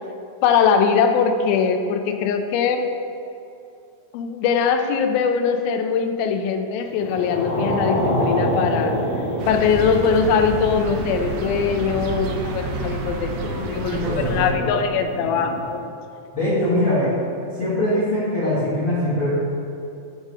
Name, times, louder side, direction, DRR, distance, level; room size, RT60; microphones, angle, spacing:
voice 1, 0.4-2.9 4.1-9.0 9.5-15.9, left 6 dB, 90° left, 6 dB, 2.4 m, -21 dB
sound 1, 6.9-15.7, equal, 60° left, 2.3 m, -28 dB
sound 2, 9.4-14.5, right 4 dB, 85° right, 1.7 m, -29 dB
voice 2, 13.9-14.7 16.3-17.1 17.6-19.3, left 1 dB, 40° left, -11 dB, 2.1 m, -22 dB
9.7 x 3.7 x 4.8 m, 2.6 s
omnidirectional pair, 4.1 m